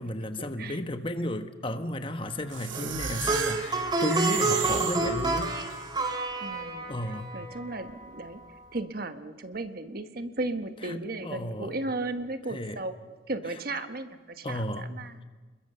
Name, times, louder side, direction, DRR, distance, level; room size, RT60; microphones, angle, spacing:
voice 1, 0.0-5.5 6.9-7.3 10.8-11.7 12.5-12.8 14.4-14.9, left 1 dB, 25° left, 8 dB, 1.1 m, -33 dB
sound 1, 2.5-5.8, right 7 dB, 85° right, 2.5 m, -34 dB
Plucked string instrument, 2.7-8.0, right 2 dB, 20° right, 2.4 m, -30 dB
voice 2, 6.4-6.9 7.3-8.4 8.7-13.0 13.3-15.2, right 2 dB, 50° right, 9 dB, 1.3 m, -35 dB
28.0 x 22.0 x 6.9 m, 1.3 s
head